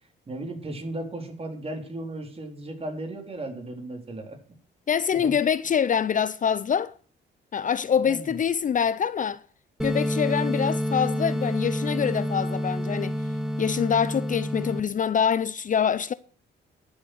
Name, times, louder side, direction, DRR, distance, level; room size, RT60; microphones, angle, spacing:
voice 1, 0.3-4.4 5.1-5.3 8.0-8.4, right 1 dB, 30° right, 3.8 m, -35 dB
voice 2, 4.9-6.9 7.5-9.4 9.8-13.2 13.6-16.1, left 7 dB, 40° left, 0.5 m, -25 dB
sound 1, 9.8-14.8, equal, 5° right, 1.3 m, -28 dB
11.5 x 7.3 x 8.0 m
cardioid pair, 90°, 20 cm